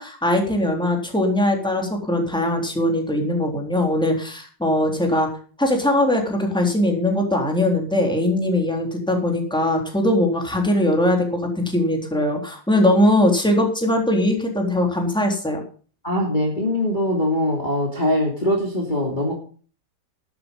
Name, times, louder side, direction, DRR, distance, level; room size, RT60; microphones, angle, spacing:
voice 1, 0.0-5.3 5.6-15.6, left 1 dB, ahead, 1 dB, 3.6 m, -21 dB
voice 2, 16.0-19.3, left 1 dB, 25° left, -1 dB, 3.1 m, -22 dB
12.5 x 12.0 x 5.4 m, 0.41 s
omnidirectional pair, 2.0 m